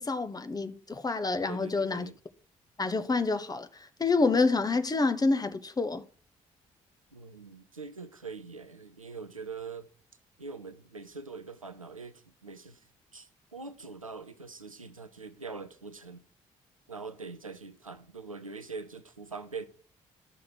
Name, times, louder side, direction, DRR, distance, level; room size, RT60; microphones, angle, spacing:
voice 1, 0.0-2.1 2.8-6.0, left 3 dB, 20° left, 1.1 m, -28 dB
voice 2, 1.5-2.2 7.1-9.9 10.4-12.8 13.1-16.2 16.9-19.7, right 4 dB, 90° right, 0.5 m, -43 dB
12.0 x 6.5 x 6.0 m
figure-of-eight pair, 40°, 17 cm